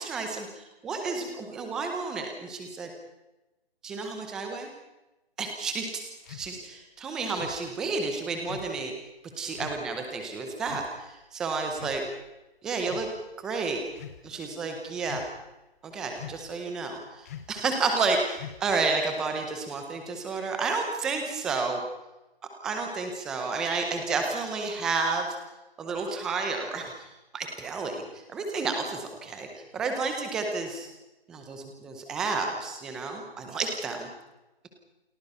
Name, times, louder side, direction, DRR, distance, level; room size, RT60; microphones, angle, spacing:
voice 1, 0.0-2.9 3.8-4.7 5.4-6.0 6.3-8.9 9.4-12.0 12.6-13.1 13.4-13.8 14.2-15.2 15.8-21.8 22.6-25.4 25.8-26.9 27.3-30.9 31.3-34.1, right 4 dB, ahead, 4 dB, 0.6 m, -31 dB
sound 1, 6.3-6.5 7.3-7.6 8.5-8.8 9.5-9.8 10.7-10.9 11.7-12.3 12.8-13.1 13.9-14.2 15.0-15.5 16.1-16.5 17.3-17.6 18.3-18.8, left 10 dB, 15° left, 1.0 m, -43 dB
29.0 x 19.5 x 5.5 m, 0.99 s
figure-of-eight pair, 160°, 31 cm